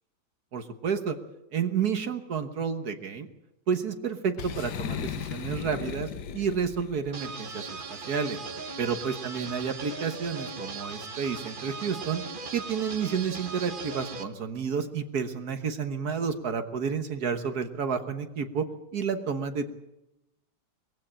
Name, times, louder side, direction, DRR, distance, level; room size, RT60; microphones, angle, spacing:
voice 1, 0.5-1.2 1.5-3.3 3.7-8.4 8.8-12.2 12.5-18.7 18.9-19.7, right 6 dB, 65° right, 8 dB, 1.7 m, -30 dB
Boom, 4.4-7.1, left 8 dB, 80° left, 1.6 m, -36 dB
sound 1, 7.1-14.2, right 4 dB, 35° right, 1.2 m, -38 dB
21.5 x 16.0 x 8.8 m, 0.91 s
omnidirectional pair, 1.8 m